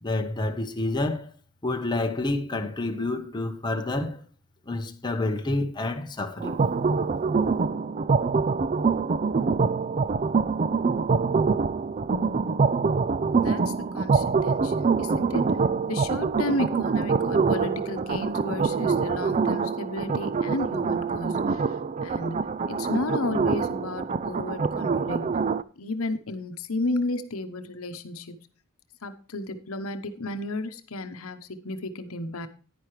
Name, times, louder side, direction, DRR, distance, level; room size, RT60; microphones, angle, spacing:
voice 1, 0.0-1.3 1.6-4.2 4.7-6.5, left 2 dB, 20° left, 1.0 m, -28 dB
sound 1, 6.4-25.6, right 5 dB, 35° right, 0.4 m, -25 dB
voice 2, 13.3-15.6 15.9-21.7 22.0-25.3 25.8-28.4 29.0-32.5, left 2 dB, 75° left, 1.0 m, -33 dB
10.5 x 10.0 x 3.2 m
head